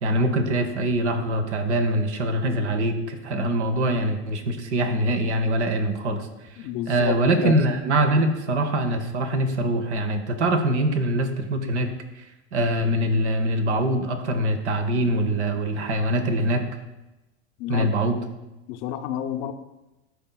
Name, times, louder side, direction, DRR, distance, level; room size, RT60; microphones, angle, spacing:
voice 1, 0.0-6.6 6.9-12.3 12.5-16.6 17.7-18.2, right 1 dB, 85° right, 7 dB, 0.8 m, -23 dB
voice 2, 6.6-7.1 7.4-7.6 17.6-18.1 18.7-19.5, left 11 dB, 55° left, 7 dB, 0.6 m, -30 dB
11.0 x 4.0 x 2.3 m, 1.0 s
hypercardioid pair, 85°, 34 cm